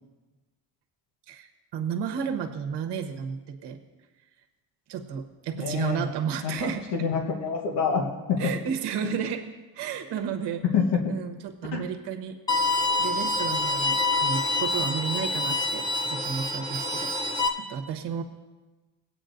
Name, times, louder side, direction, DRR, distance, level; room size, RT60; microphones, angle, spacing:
voice 1, 1.3-3.8 4.9-7.1 8.4-10.6 11.1-12.7 13.0-17.1 17.6-18.2, right 7 dB, 70° right, 7 dB, 1.1 m, -32 dB
voice 2, 5.6-6.0 6.4-8.4 9.0-9.2 10.7-11.0 11.7-11.8, left 6 dB, 70° left, 1 dB, 1.3 m, -27 dB
Bowed string instrument, 12.5-17.5, left 2 dB, 10° left, 0.6 m, -26 dB
17.0 x 8.7 x 2.6 m, 1.2 s
cardioid pair, 145°, 43 cm